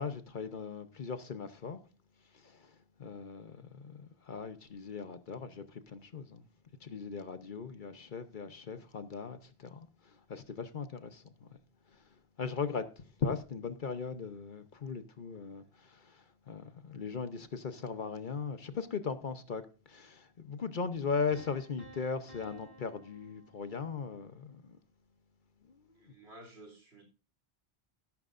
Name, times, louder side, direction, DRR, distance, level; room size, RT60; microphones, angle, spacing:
voice 1, 0.0-1.8 3.0-6.4 6.8-9.9 10.3-11.5 12.4-16.2 16.5-19.6 19.9-24.8 25.7-25.8, left 5 dB, 50° left, 1.0 m, -38 dB
Piano, 21.3-24.2, right 1 dB, 75° left, 4.7 m, -55 dB
voice 2, 26.0-27.0, right 1 dB, 80° right, 3.2 m, -53 dB
13.0 x 12.0 x 2.5 m
omnidirectional pair, 1.1 m